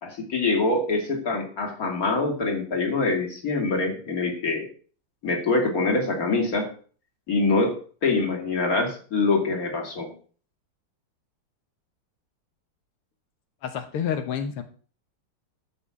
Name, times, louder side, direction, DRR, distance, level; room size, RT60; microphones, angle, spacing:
voice 1, 0.0-4.7 5.2-6.7 7.3-10.1, left 3 dB, 40° left, 2 dB, 3.0 m, -24 dB
voice 2, 13.6-14.6, left 8 dB, 90° left, 8 dB, 2.0 m, -29 dB
13.0 x 5.7 x 7.3 m, 0.43 s
omnidirectional pair, 2.4 m